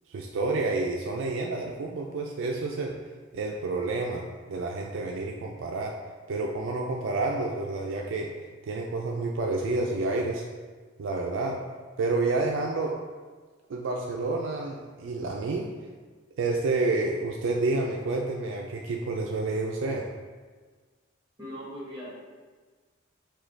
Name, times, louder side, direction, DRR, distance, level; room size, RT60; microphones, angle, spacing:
voice 1, 0.1-3.0 3.3-6.0 6.3-8.3 8.6-10.4 11.0-11.6 12.0-13.0 13.7-15.7 16.4-20.1, right 3 dB, 65° right, 0 dB, 0.4 m, -29 dB
voice 2, 21.4-22.1, equal, 20° right, -6 dB, 1.4 m, -39 dB
6.1 x 2.3 x 3.3 m, 1.4 s
head